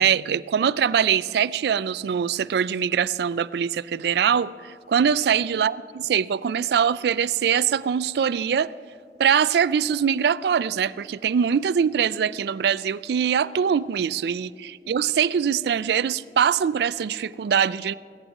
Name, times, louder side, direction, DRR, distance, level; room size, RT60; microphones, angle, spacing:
voice 1, 0.0-5.8 6.1-8.7 9.2-17.9, right 7 dB, 60° right, 19 dB, 0.3 m, -23 dB
16.5 x 14.0 x 4.8 m, 2.2 s
head